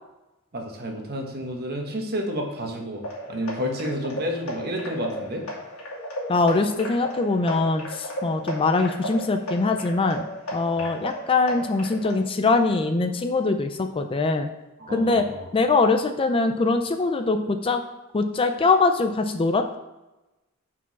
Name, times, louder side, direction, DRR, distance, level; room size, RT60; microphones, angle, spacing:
voice 1, 0.5-3.0 3.3-5.4 10.7-10.8 14.8-15.4, equal, 45° right, 2 dB, 1.3 m, -30 dB
sound 1, 3.0-12.1, equal, 75° left, 1.8 m, -35 dB
voice 2, 6.3-10.3 10.5-14.5 14.9-15.2 15.5-17.8 18.1-19.8, left 3 dB, 25° left, 7 dB, 0.4 m, -22 dB
6.1 x 4.7 x 5.9 m, 1.0 s
head